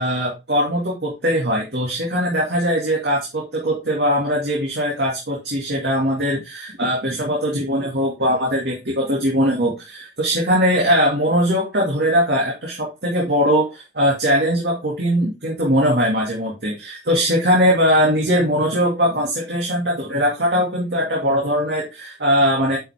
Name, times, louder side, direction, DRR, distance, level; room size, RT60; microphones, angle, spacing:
voice 1, 0.0-22.8, equal, 65° right, -3 dB, 2.4 m, -20 dB
9.3 x 5.8 x 3.5 m, 0.26 s
head